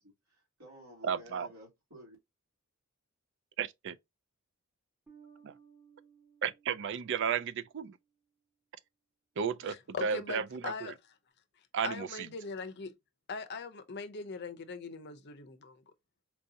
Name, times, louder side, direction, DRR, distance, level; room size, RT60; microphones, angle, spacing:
voice 1, 0.0-2.2, equal, 85° right, 2.5 m, -53 dB
voice 2, 1.0-1.5 3.6-4.0 5.4-5.5 6.4-8.0 9.4-10.9 11.7-12.3, right 7 dB, 55° right, 0.4 m, -34 dB
Bass guitar, 5.1-8.1, right 7 dB, 5° right, 1.0 m, -61 dB
voice 3, 9.7-10.9 11.8-12.9 13.3-15.8, left 4 dB, 50° left, 0.6 m, -41 dB
4.5 x 2.7 x 2.7 m
head